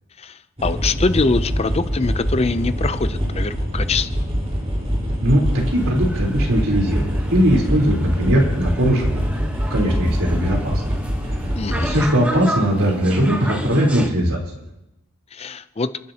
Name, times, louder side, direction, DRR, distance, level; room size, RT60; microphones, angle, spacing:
voice 1, 0.6-4.1 11.6-12.0 15.3-15.9, left 3 dB, 30° left, 13 dB, 0.4 m, -23 dB
sound 1, 0.6-12.1, equal, 30° right, 4.2 m, -24 dB
voice 2, 5.2-9.4 9.7-10.8 11.4-14.4, equal, 75° right, -1 dB, 3.7 m, -19 dB
sound 2, 5.5-14.1, equal, 5° right, 1.0 m, -32 dB
30.0 x 10.5 x 2.9 m, 0.88 s
head